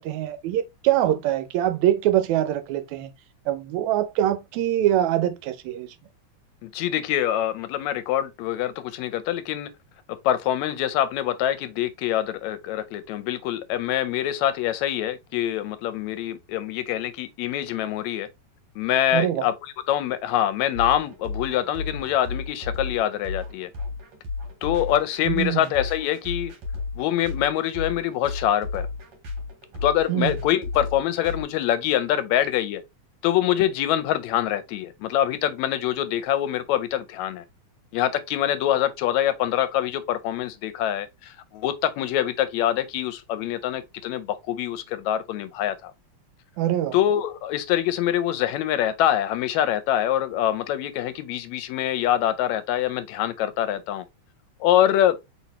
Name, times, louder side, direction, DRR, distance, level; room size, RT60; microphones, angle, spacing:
voice 1, 0.0-3.1 3.5-5.9 19.1-19.4 25.2-25.6 30.1-30.3 46.6-47.0, right 12 dB, 80° right, 1.9 m, -23 dB
voice 2, 6.6-9.7 10.2-18.3 18.8-23.7 24.6-26.5 27.0-28.9 29.8-32.8 33.2-37.4 37.9-45.9 46.9-54.0 54.6-55.2, left 11 dB, 80° left, 1.8 m, -25 dB
sound 1, 20.7-31.4, left 4 dB, 55° right, 2.4 m, -33 dB
4.3 x 4.1 x 2.8 m
omnidirectional pair, 3.3 m